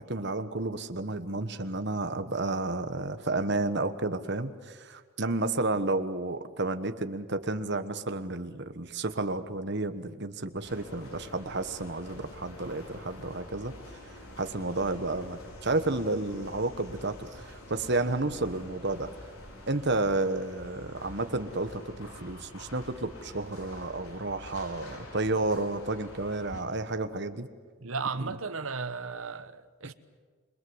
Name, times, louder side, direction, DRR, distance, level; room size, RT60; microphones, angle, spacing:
voice 1, 0.0-13.7 14.4-19.1 19.7-27.5 28.2-28.3, right 2 dB, 50° right, 1.3 m, -31 dB
sound 1, 10.6-26.6, left 1 dB, 85° left, 4.9 m, -47 dB
voice 2, 27.8-29.9, right 4 dB, 75° right, 1.1 m, -35 dB
27.5 x 22.5 x 8.0 m
head